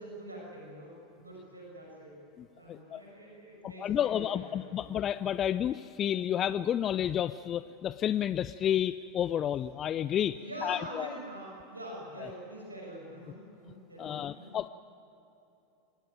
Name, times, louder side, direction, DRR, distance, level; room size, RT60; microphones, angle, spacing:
voice 1, 0.0-2.1 2.5-4.9 10.4-14.6, equal, 85° right, -2 dB, 6.2 m, -45 dB
voice 2, 2.7-3.0 3.6-11.1 14.0-14.7, left 10 dB, 35° left, 15 dB, 0.5 m, -31 dB
25.5 x 19.0 x 9.1 m, 3.0 s
figure-of-eight pair, 85°, 0 cm